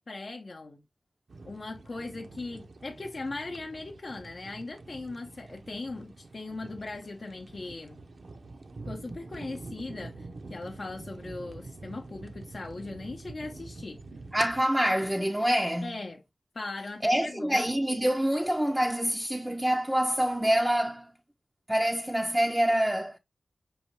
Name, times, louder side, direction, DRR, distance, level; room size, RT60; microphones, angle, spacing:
voice 1, 0.1-0.8 1.4-8.0 8.9-14.0 15.8-16.2 16.5-17.7, left 3 dB, 60° left, 0.6 m, -39 dB
sound 1, 1.3-14.6, right 3 dB, 70° right, 0.5 m, -46 dB
voice 2, 14.3-15.9 17.0-21.1 21.7-23.2, equal, 10° right, 0.4 m, -26 dB
5.4 x 2.7 x 3.0 m
wide cardioid pair, 65°, 0 cm